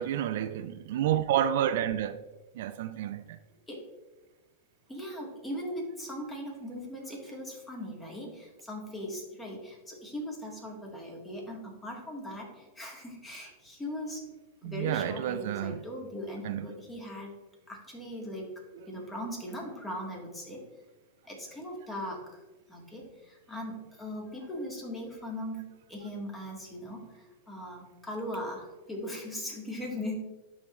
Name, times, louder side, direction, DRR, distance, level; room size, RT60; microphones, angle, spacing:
voice 1, 0.0-2.2 2.6-3.2 14.6-15.8 16.4-16.6, right 10 dB, 70° right, 0.3 m, -29 dB
voice 2, 4.9-14.2 14.6-17.3 17.7-18.5 18.9-20.6 21.2-22.4 22.7-30.1, equal, 15° left, 1.8 m, -39 dB
11.0 x 3.7 x 3.1 m
hypercardioid pair, 130°, 0 cm